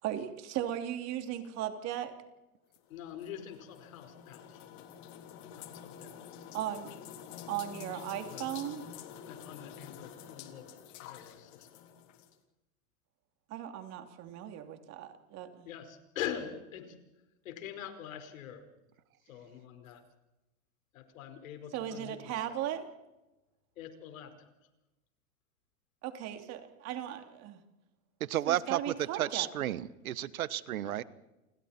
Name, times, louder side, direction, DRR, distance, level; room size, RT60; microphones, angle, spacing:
voice 1, 0.0-2.1 6.5-6.9 7.5-8.8 13.5-15.7 21.7-22.9 26.0-27.6 28.5-29.5, right 11 dB, 40° right, 6 dB, 3.0 m, -37 dB
sound 1, 2.7-12.3, left 9 dB, 45° left, 3.5 m, -48 dB
voice 2, 2.9-4.6 5.5-6.2 8.3-8.5 9.3-10.7 11.0-11.8 15.6-16.9 17.4-18.7 19.2-20.0 20.9-22.6 23.8-24.5 30.8-30.9, left 9 dB, 75° left, 6 dB, 5.0 m, -44 dB
voice 3, 28.2-31.0, right 12 dB, 90° right, 17 dB, 1.3 m, -32 dB
29.5 x 26.5 x 4.4 m, 1.0 s
supercardioid pair, 135°, 41 cm